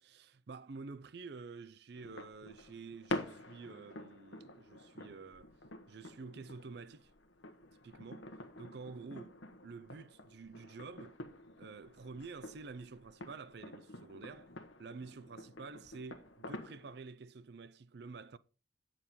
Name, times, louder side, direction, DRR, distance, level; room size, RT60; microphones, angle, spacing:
voice 1, 0.0-5.5 5.9-7.1 7.8-9.4 9.6-11.2 11.6-14.5 14.8-18.4, right 4 dB, 60° right, 0.5 m, -49 dB
sound 1, 1.9-17.0, left 1 dB, 80° left, 1.1 m, -48 dB
9.2 x 7.6 x 4.2 m
head